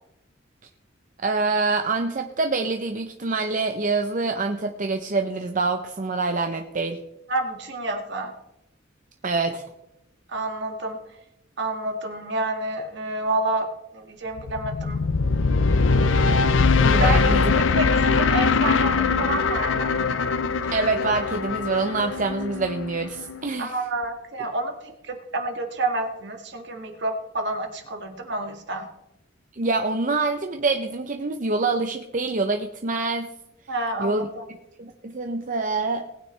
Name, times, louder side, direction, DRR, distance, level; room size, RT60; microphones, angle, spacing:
voice 1, 1.2-7.0 9.2-9.6 16.8-17.4 20.7-23.7 29.5-33.3 34.0-34.3 34.8-36.0, right 3 dB, 40° right, 5 dB, 0.7 m, -25 dB
voice 2, 7.3-8.3 10.3-11.0 11.6-15.0 17.0-19.9 23.6-28.9 33.7-34.4, right 2 dB, 60° right, 4 dB, 1.9 m, -29 dB
sound 1, 14.4-23.5, left 4 dB, 70° left, 0.6 m, -22 dB
19.5 x 9.3 x 3.3 m, 0.88 s
head